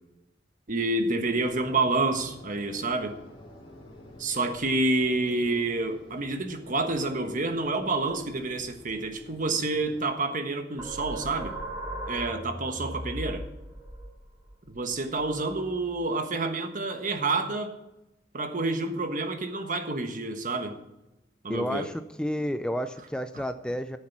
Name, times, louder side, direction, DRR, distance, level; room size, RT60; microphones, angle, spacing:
voice 1, 0.7-3.2 4.2-11.5 12.1-13.4 14.7-17.7 18.3-20.8 21.4-21.9 23.3-23.4, right 2 dB, 45° right, 7 dB, 1.3 m, -28 dB
sound 1, 1.2-10.0, equal, 30° left, 3.8 m, -49 dB
sound 2, 10.8-16.1, right 1 dB, 20° right, 2.2 m, -38 dB
voice 2, 21.5-24.0, equal, 5° left, 9 dB, 0.4 m, -31 dB
13.5 x 7.2 x 6.0 m, 0.93 s
head